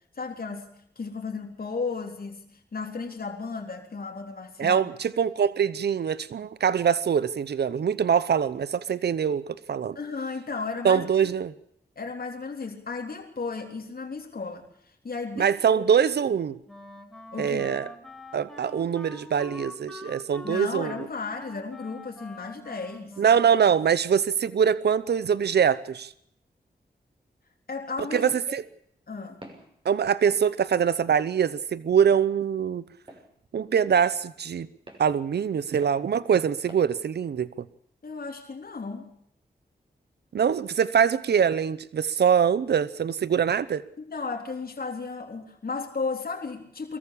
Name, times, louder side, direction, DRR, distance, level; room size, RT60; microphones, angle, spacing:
voice 1, 0.2-0.7 1.0-2.4 2.7-4.9 10.0-11.3 12.0-14.7 15.0-15.8 17.3-17.7 20.4-23.2 27.7-28.6 29.1-29.4 38.0-39.1 44.0-47.0, left 4 dB, 60° left, 2 dB, 3.6 m, -34 dB
voice 2, 4.6-10.0 10.8-11.5 15.4-16.6 17.4-17.9 18.3-21.1 23.2-26.1 28.1-28.6 29.8-32.8 33.5-34.7 35.0-37.7 40.3-43.8, right 7 dB, 80° right, 17 dB, 0.8 m, -23 dB
Wind instrument woodwind instrument, 16.7-24.1, left 1 dB, ahead, 5.4 m, -45 dB
Walk footsteps, 29.4-29.7 30.3-30.5 31.2-31.4 32.1-32.3 33.1-33.3 34.0-34.1 34.9-35.1 35.8-36.0 36.7-36.9, right 1 dB, 30° right, 6.2 m, -47 dB
22.5 x 14.5 x 8.4 m, 0.70 s
cardioid pair, 50°, 17 cm